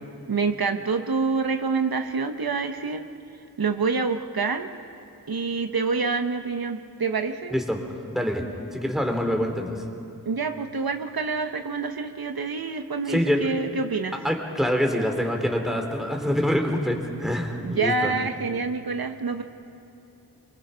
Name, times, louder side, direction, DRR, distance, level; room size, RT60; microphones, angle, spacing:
voice 1, 0.3-3.1 3.6-4.7 5.3-7.5 10.3-14.2 17.6-19.4, right 4 dB, 70° right, 7 dB, 1.1 m, -27 dB
voice 2, 8.1-8.4 8.7-9.8 13.1-13.5 14.2-18.1, equal, ahead, 3 dB, 3.2 m, -25 dB
24.0 x 24.0 x 5.7 m, 2.9 s
wide cardioid pair, 55°, 38 cm